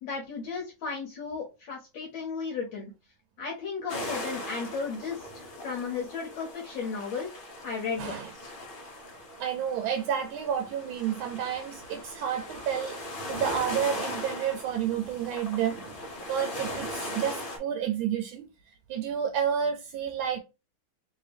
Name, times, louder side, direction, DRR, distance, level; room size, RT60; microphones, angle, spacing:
voice 1, 0.0-2.9 3.4-7.3 7.6-8.5, left 5 dB, 70° left, 1.4 m, -35 dB
sound 1, 3.9-17.6, left 1 dB, 45° left, 0.7 m, -39 dB
voice 2, 8.0-8.3 9.4-16.0 16.3-18.4 18.9-20.4, right 8 dB, 80° right, 1.4 m, -30 dB
3.3 x 2.6 x 3.3 m
omnidirectional pair, 2.2 m